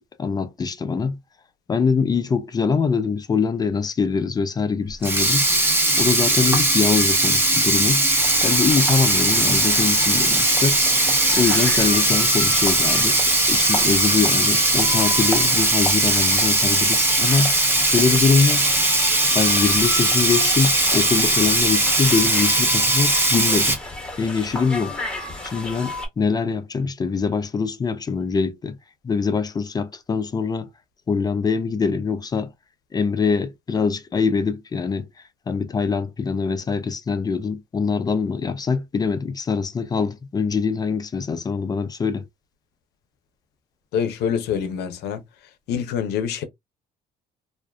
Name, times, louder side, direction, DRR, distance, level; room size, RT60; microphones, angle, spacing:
voice 1, 0.2-1.2 1.7-5.5 6.0-8.0 8.4-10.8 11.3-13.2 13.5-17.5 17.8-18.7 19.3-23.8 24.2-24.9 25.4-28.8 29.0-30.7 31.1-32.5 32.9-35.1 35.5-42.3, left 5 dB, 25° left, 0.3 m, -23 dB
Sink (filling or washing), 4.9-23.7, right 1 dB, 15° right, 0.7 m, -19 dB
sound 1, 8.1-26.1, left 2 dB, 5° left, 1.1 m, -33 dB
voice 2, 43.9-45.2 45.7-46.4, left 8 dB, 75° left, 0.6 m, -25 dB
2.4 x 2.3 x 2.2 m
cardioid pair, 110°, 17 cm